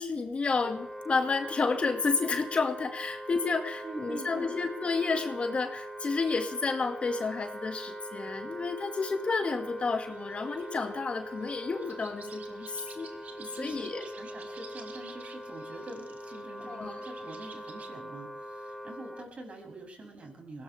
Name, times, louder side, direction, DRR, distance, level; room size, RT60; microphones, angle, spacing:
voice 1, 0.0-13.1 13.6-14.0 16.7-16.9, left 4 dB, 45° left, 6 dB, 2.1 m, -31 dB
Wind instrument woodwind instrument, 0.6-19.3, right 1 dB, 5° left, 2.9 m, -42 dB
voice 2, 3.8-4.5 13.3-20.6, right 2 dB, 45° right, 3 dB, 7.2 m, -45 dB
sound 1, 9.8-17.9, right 5 dB, 65° right, 2.9 m, -53 dB
20.5 x 17.5 x 3.5 m, 0.73 s
cardioid pair, 70°, 3 cm